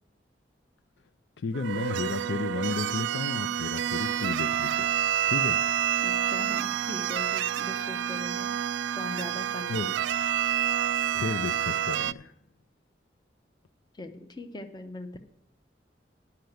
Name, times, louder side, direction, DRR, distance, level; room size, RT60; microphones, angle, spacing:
voice 1, 1.4-4.9 5.3-5.6 9.7-9.9 11.1-12.3, left 4 dB, 75° left, 11 dB, 0.4 m, -33 dB
sound 1, 1.5-12.1, right 10 dB, 90° right, 0.3 m, -28 dB
voice 2, 6.0-8.5 9.0-9.8 13.9-15.2, left 2 dB, 25° left, 7 dB, 0.7 m, -40 dB
10.5 x 5.8 x 7.8 m, 0.76 s
head